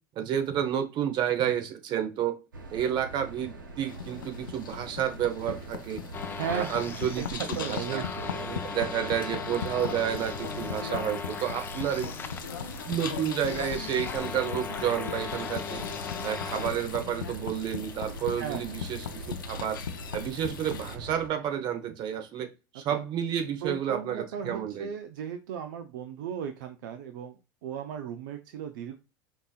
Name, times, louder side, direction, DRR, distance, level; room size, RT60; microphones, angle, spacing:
voice 1, 0.2-2.4 2.7-6.0 6.5-7.2 7.5-8.1 8.6-12.1 12.9-15.9 16.2-19.8 20.1-24.9, right 9 dB, 45° right, 8 dB, 0.9 m, -30 dB
sound 1, 2.5-21.3, right 2 dB, 90° right, 1.0 m, -43 dB
sound 2, 3.9-21.0, left 8 dB, 80° left, 0.5 m, -39 dB
sound 3, 6.1-16.7, left 5 dB, 20° left, 0.5 m, -39 dB
voice 2, 6.4-7.3 7.5-8.8 18.4-18.7 23.6-28.9, right 8 dB, 70° right, 8 dB, 0.5 m, -36 dB
5.3 x 2.8 x 2.4 m, 0.28 s
hypercardioid pair, 85°, 11 cm